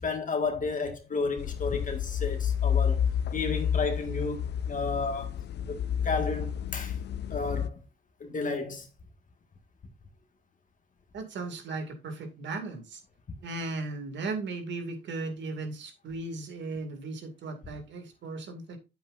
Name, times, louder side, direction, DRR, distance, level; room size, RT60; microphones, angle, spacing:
voice 1, 0.0-3.0 3.3-5.3 5.7-5.8 6.0-7.0 7.3-7.8 8.2-8.9, left 4 dB, 40° left, 1.8 m, -32 dB
sound 1, 1.4-7.7, left 8 dB, 60° left, 0.6 m, -30 dB
voice 2, 11.1-13.0 13.4-18.8, right 3 dB, 65° right, 2.5 m, -36 dB
8.9 x 7.9 x 2.6 m
cardioid pair, 90°, 20 cm